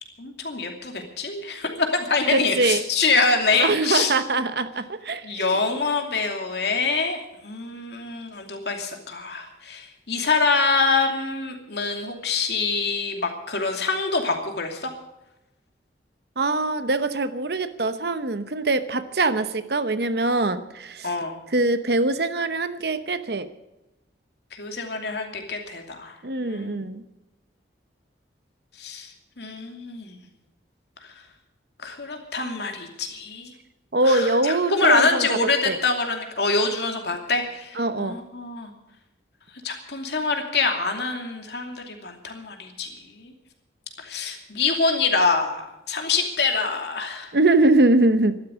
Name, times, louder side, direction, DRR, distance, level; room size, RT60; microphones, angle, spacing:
voice 1, 0.2-4.1 5.2-14.9 21.0-21.3 24.5-26.1 26.4-26.8 28.8-29.1 29.4-30.2 31.8-33.5 34.1-38.7 39.6-43.3 44.0-47.3, left 4 dB, 65° left, 3 dB, 2.7 m, -25 dB
voice 2, 2.3-2.8 3.5-5.6 16.4-21.1 21.5-23.5 26.2-27.0 33.9-35.8 37.7-38.2 47.3-48.4, right 2 dB, 60° right, 11 dB, 0.9 m, -23 dB
13.5 x 12.0 x 8.0 m, 0.93 s
head